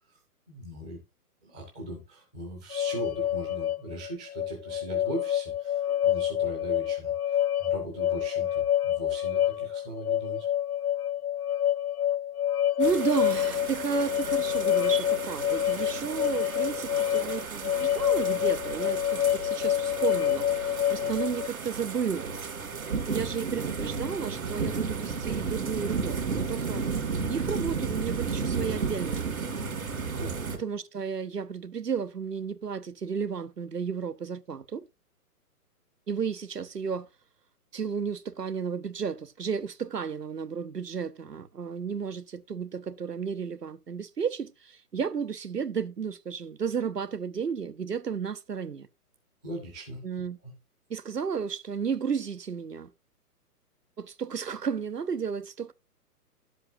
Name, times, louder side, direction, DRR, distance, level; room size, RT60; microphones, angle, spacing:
voice 1, 0.5-1.0 1.4-10.5 30.2-30.5 49.4-50.0 50.4-50.5, right 2 dB, 5° right, 0.5 m, -40 dB
sound 1, 2.7-21.5, left 11 dB, 70° left, 0.5 m, -27 dB
sound 2, 12.8-30.6, right 5 dB, 60° right, 2.2 m, -33 dB
voice 2, 12.8-22.4 23.1-26.9 27.3-29.5 30.6-34.8 36.1-37.1 37.7-48.9 50.0-50.4 50.9-52.9 54.0-55.7, right 6 dB, 85° right, 0.9 m, -33 dB
11.0 x 7.6 x 2.6 m
figure-of-eight pair, 130°, 47 cm